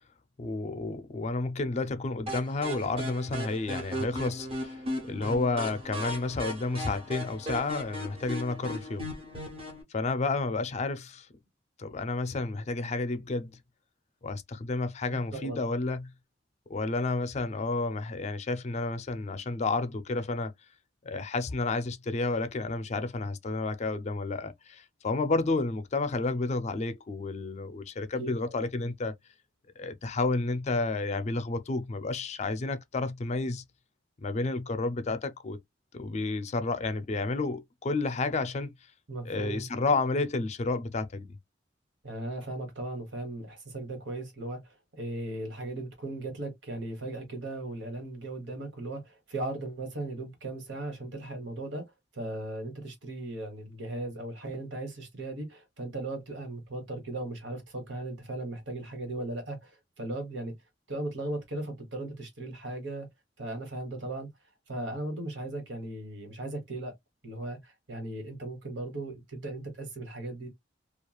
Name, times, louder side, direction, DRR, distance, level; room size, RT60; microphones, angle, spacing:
voice 1, 0.4-9.1 9.9-11.3 11.8-13.5 14.2-16.1 16.7-20.5 21.0-29.1 29.8-33.6 34.2-35.6 35.9-38.7 39.2-41.3, left 3 dB, 40° left, 0.4 m, -31 dB
sound 1, 2.3-9.8, equal, 35° right, 1.2 m, -37 dB
voice 2, 15.1-15.6 28.2-28.7 39.1-39.7 42.0-51.9 52.1-60.5 60.9-63.1 63.4-64.3 64.7-67.0 67.2-70.5, right 2 dB, 85° right, 1.3 m, -37 dB
3.0 x 2.4 x 2.3 m
head